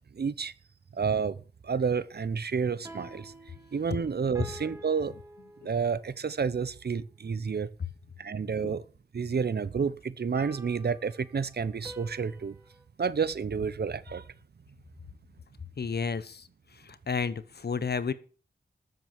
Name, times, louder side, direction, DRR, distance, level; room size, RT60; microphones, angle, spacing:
voice 1, 0.1-0.5 0.9-1.4 1.6-3.3 3.7-5.1 5.6-7.7 8.2-8.8 9.1-12.6 13.0-14.2, right 6 dB, 80° right, 0.8 m, -30 dB
sound 1, 2.7-6.1 10.3-12.8, right 1 dB, 15° right, 2.3 m, -49 dB
voice 2, 15.8-16.5 16.8-18.1, left 5 dB, 80° left, 1.0 m, -31 dB
13.5 x 7.7 x 7.5 m
wide cardioid pair, 65°, 16 cm